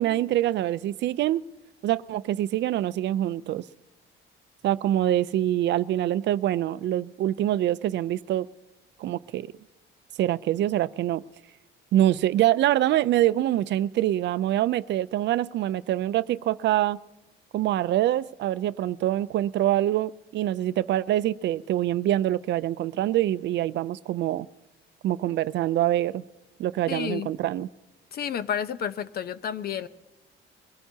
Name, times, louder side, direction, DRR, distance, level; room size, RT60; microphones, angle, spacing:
voice 1, 0.0-1.4 1.8-3.6 4.6-8.5 9.0-9.5 10.2-11.2 11.9-17.0 17.5-24.5 25.0-26.2 26.6-27.7, right 13 dB, 60° right, 16 dB, 0.5 m, -25 dB
voice 2, 26.9-27.3 28.1-29.9, left 8 dB, 50° left, 14 dB, 0.7 m, -31 dB
23.0 x 16.0 x 2.8 m, 1.0 s
cardioid pair, 135°, 20 cm